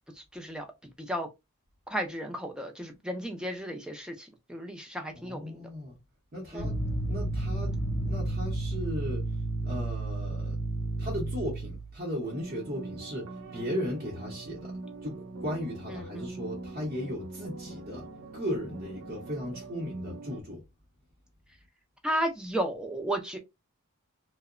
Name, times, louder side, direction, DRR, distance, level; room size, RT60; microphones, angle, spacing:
voice 1, 0.3-0.6 1.1-1.3 1.9-5.6 6.5-6.7 16.0-16.3 22.0-23.4, right 1 dB, 5° right, 0.4 m, -33 dB
voice 2, 5.1-6.0 6.3-6.8 7.1-7.7 8.0-9.2 9.6-10.6 11.0-18.1 18.3-20.6, equal, 40° right, 0.7 m, -36 dB
sound 1, 6.6-11.9, right 2 dB, 65° left, 0.7 m, -31 dB
sound 2, 12.2-20.4, right 2 dB, 80° right, 0.5 m, -43 dB
2.8 x 2.0 x 2.4 m
head